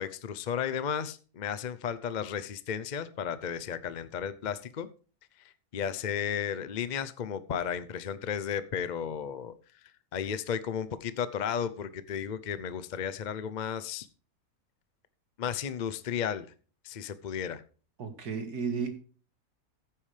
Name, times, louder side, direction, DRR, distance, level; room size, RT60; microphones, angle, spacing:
voice 1, 0.0-4.9 5.4-9.5 10.1-14.1 15.4-16.5 16.8-17.6, left 8 dB, 55° left, 13 dB, 0.5 m, -34 dB
voice 2, 18.0-18.9, right 5 dB, 75° right, 7 dB, 2.3 m, -33 dB
14.5 x 8.9 x 3.3 m, 0.39 s
omnidirectional pair, 1.7 m